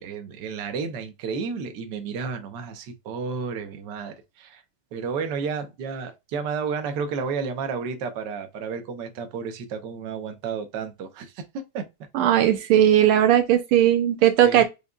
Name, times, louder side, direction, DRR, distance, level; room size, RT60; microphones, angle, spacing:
voice 1, 0.0-4.6 4.9-11.9 13.0-13.1 14.4-14.6, right 5 dB, 60° right, 1.3 m, -32 dB
voice 2, 12.1-14.6, right 11 dB, 80° right, 1.5 m, -18 dB
5.1 x 2.8 x 2.3 m
omnidirectional pair, 2.4 m